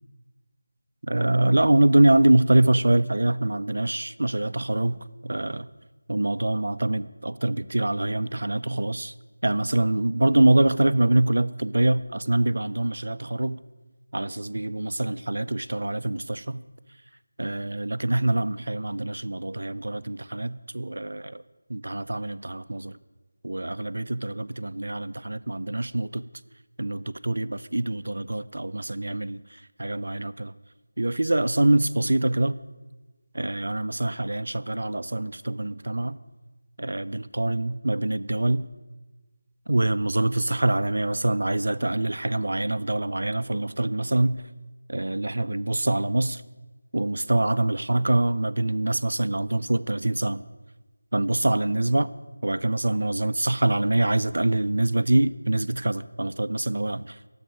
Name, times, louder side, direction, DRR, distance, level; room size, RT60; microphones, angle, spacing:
voice 1, 1.0-5.7 6.1-9.1 9.4-13.6 14.1-16.6 17.4-21.4 21.7-23.0 23.4-26.2 26.8-30.5 31.0-32.6 33.3-36.2 36.8-38.7 39.7-44.4 44.9-46.4 46.9-50.4 51.1-52.1 52.4-57.2, right 1 dB, 60° right, 15 dB, 0.5 m, -24 dB
20.0 x 8.0 x 6.3 m, 1.2 s
figure-of-eight pair, 170°, 0 cm